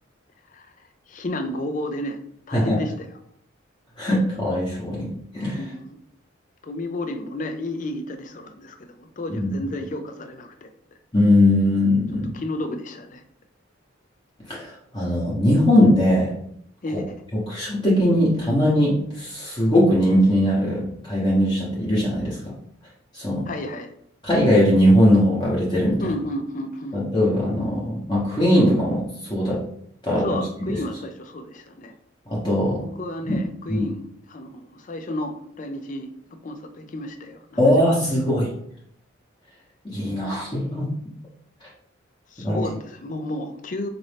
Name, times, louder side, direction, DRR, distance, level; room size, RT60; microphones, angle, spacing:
voice 1, 1.1-2.2 2.5-3.1 5.6-6.0 6.6-10.7 12.3-13.2 16.8-17.2 23.5-23.9 26.0-27.1 30.2-31.9 32.8-34.0 34.3-38.1 42.3-43.9, left 1 dB, 40° left, 7 dB, 0.4 m, -32 dB
voice 2, 4.0-5.1 5.3-5.6 9.4-9.6 11.1-12.3 14.5-16.3 17.3-22.4 23.1-23.5 24.2-26.0 26.9-29.0 29.3-29.6 30.0-30.8 32.3-32.8 33.2-33.4 33.7-33.8 37.6-38.5 39.8-40.9 42.4-42.6, left 1 dB, 20° left, -7 dB, 0.9 m, -20 dB
4.0 x 2.5 x 3.3 m, 0.68 s
head